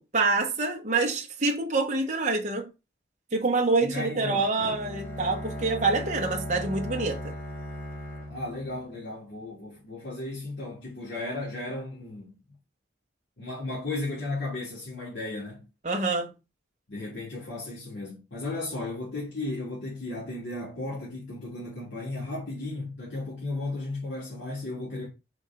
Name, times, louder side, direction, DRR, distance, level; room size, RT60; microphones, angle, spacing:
voice 1, 0.0-2.7 3.3-7.3 15.8-16.3, right 3 dB, 40° right, 1.3 m, -26 dB
voice 2, 3.8-4.5 8.3-12.3 13.4-15.6 16.9-25.1, left 2 dB, 70° left, 3.1 m, -35 dB
Bowed string instrument, 4.6-9.5, left 1 dB, 10° left, 2.8 m, -37 dB
5.1 x 4.5 x 5.8 m
head